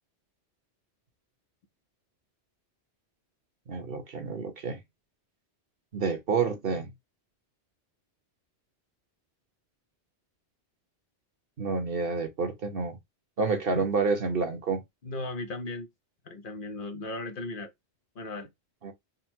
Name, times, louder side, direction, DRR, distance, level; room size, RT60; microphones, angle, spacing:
voice 1, 3.7-4.8 5.9-6.9 11.6-13.0 13.4-14.8 18.8-18.9, right 4 dB, 55° right, 1.1 m, -29 dB
voice 2, 15.0-15.9 16.2-17.7 18.2-18.5, left 2 dB, 55° left, 0.8 m, -36 dB
3.8 x 2.1 x 4.3 m
omnidirectional pair, 1.1 m